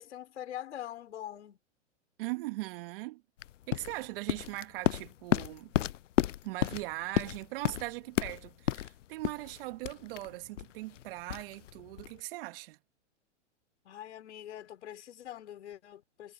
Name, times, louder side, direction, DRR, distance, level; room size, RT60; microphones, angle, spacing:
voice 1, 0.0-1.6 13.9-16.3, left 11 dB, 70° left, 5.5 m, -44 dB
voice 2, 2.2-3.2 3.7-5.7 6.4-12.8, right 20 dB, 50° right, 1.9 m, -40 dB
sound 1, 3.4-12.2, left 12 dB, 90° left, 0.5 m, -33 dB
hypercardioid pair, 130°, 36 cm